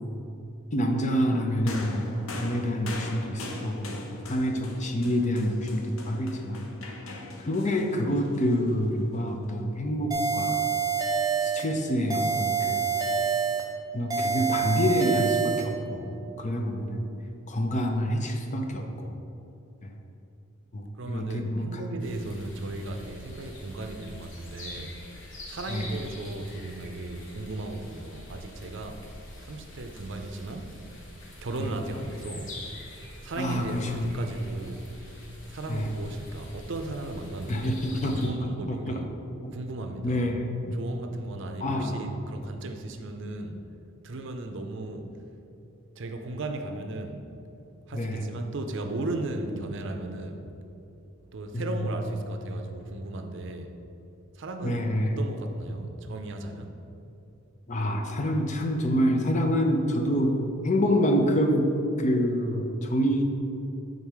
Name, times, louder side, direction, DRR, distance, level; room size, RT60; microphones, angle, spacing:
voice 1, 0.7-6.6 7.4-10.6 11.4-12.9 13.9-17.0 17.5-19.1 19.8-19.9 20.7-21.7 25.7-25.9 33.4-34.1 35.7-35.9 37.5-39.0 39.4-39.5 40.0-40.8 41.6-42.1 47.9-48.2 51.5-51.8 54.6-55.2 57.7-60.4 60.6-61.7 62.0-63.2, equal, 35° left, 3 dB, 0.6 m, -27 dB
sound 1, 1.7-9.2 10.2-10.3, left 2 dB, 80° left, 0.7 m, -41 dB
sound 2, 10.1-11.7 12.1-13.7 14.1-15.7, right 6 dB, 20° right, 0.5 m, -27 dB
voice 2, 21.0-24.9 25.5-29.0 29.4-30.7 31.4-32.5 33.2-39.1 39.5-40.2 40.7-43.6 44.0-45.1 46.0-47.2 47.9-50.4 51.2-53.7 54.3-56.8, right 2 dB, 60° right, 5 dB, 0.5 m, -36 dB
sound 3, 22.0-38.3, left 1 dB, 60° left, 1.3 m, -45 dB
7.3 x 3.9 x 4.7 m, 2.8 s
head